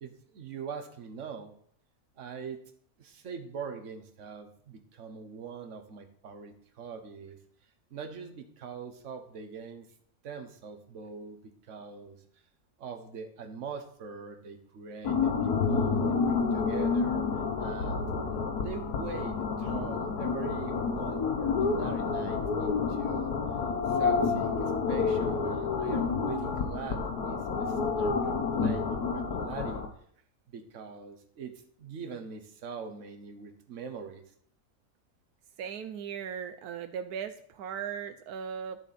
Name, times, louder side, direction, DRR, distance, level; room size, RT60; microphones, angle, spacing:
voice 1, 0.0-1.5 2.2-2.6 3.0-7.4 7.9-9.9 10.2-11.4 11.7-12.2 12.8-17.2 17.6-18.0 18.6-23.4 23.9-29.8 30.5-34.2, right 6 dB, 55° right, 6 dB, 1.4 m, -42 dB
sound 1, 15.0-29.9, left 5 dB, 90° left, 1.6 m, -29 dB
voice 2, 35.6-38.8, right 7 dB, 85° right, 9 dB, 1.2 m, -38 dB
12.5 x 6.9 x 4.2 m, 0.63 s
omnidirectional pair, 1.6 m